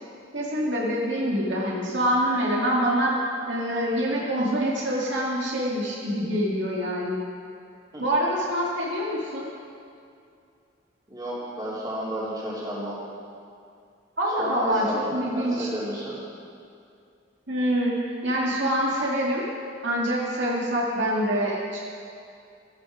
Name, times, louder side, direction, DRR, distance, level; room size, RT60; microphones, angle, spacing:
voice 1, 0.3-3.1 3.5-7.2 8.0-9.5 14.2-15.7 17.5-19.4 19.8-21.8, equal, 65° right, -4 dB, 2.1 m, -25 dB
voice 2, 11.1-13.0 14.4-15.0 15.3-16.2, equal, 20° right, -7 dB, 3.3 m, -32 dB
14.5 x 12.0 x 5.0 m, 2.4 s
head